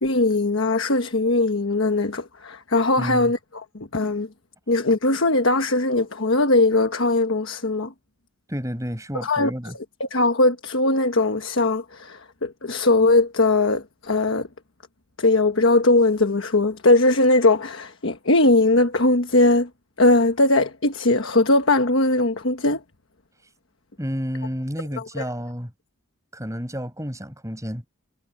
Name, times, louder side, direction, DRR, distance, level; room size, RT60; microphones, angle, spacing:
voice 1, 0.0-4.3 4.7-7.9 9.1-9.5 10.0-14.5 15.2-19.7 20.0-22.8, left 2 dB, 60° left, 1.3 m, -20 dB
voice 2, 3.0-3.3 8.5-9.7 24.0-25.7 26.3-27.9, equal, 15° right, 7.7 m, -30 dB
head